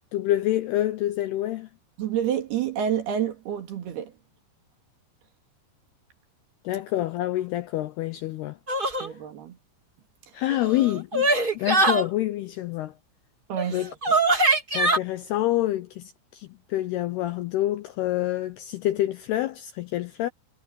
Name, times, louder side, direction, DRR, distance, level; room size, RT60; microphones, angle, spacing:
voice 1, 0.1-1.7 6.6-8.6 8.9-9.1 10.3-11.3 11.5-12.9 13.7-13.9 14.7-20.3, left 14 dB, 80° left, 2.3 m, -27 dB
voice 2, 2.0-4.1 9.0-9.6 13.5-14.1, right 9 dB, 60° right, 3.7 m, -29 dB
sound 1, 8.7-9.1 10.5-12.0 13.6-13.7 14.0-15.0, right 2 dB, 30° right, 0.9 m, -22 dB
omnidirectional pair, 5.7 m